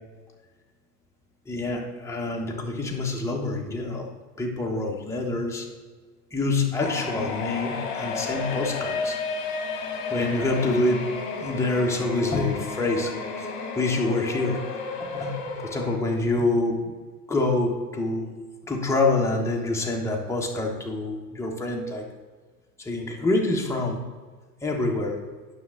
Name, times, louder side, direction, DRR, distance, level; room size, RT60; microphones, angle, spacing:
voice 1, 1.5-4.1 4.4-5.7 6.3-9.2 10.1-11.0 11.4-13.1 13.4-13.5 13.7-14.6 15.0-16.8 17.3-18.3 18.6-22.1 22.8-24.0 24.6-25.2, left 2 dB, 5° left, -1 dB, 1.3 m, -26 dB
sound 1, 6.8-16.0, left 4 dB, 40° left, 1.4 m, -32 dB
9.4 x 6.1 x 3.9 m, 1.4 s
figure-of-eight pair, 85°, 47 cm